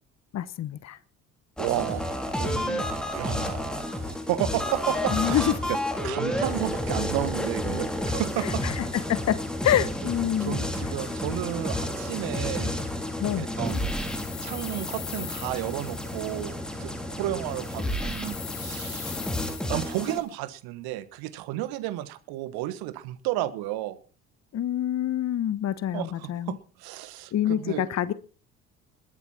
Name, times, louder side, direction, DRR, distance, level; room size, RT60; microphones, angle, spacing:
voice 1, 0.3-1.0 5.1-5.5 8.6-8.8 9.1-9.4 9.6-10.6 13.2-13.4 24.5-26.5 27.3-28.1, left 11 dB, 40° left, 1.1 m, -26 dB
sound 1, 1.6-20.2, left 1 dB, ahead, 3.5 m, -31 dB
voice 2, 1.6-2.8 3.1-5.8 6.0-8.6 10.0-12.8 13.4-13.9 14.4-19.3 19.7-24.0 25.9-27.9, right 14 dB, 60° right, 1.4 m, -32 dB
sound 2, 13.7-16.5 17.5-20.2, left 10 dB, 80° left, 2.3 m, -42 dB
21.0 x 9.1 x 4.4 m
figure-of-eight pair, 55°, 43 cm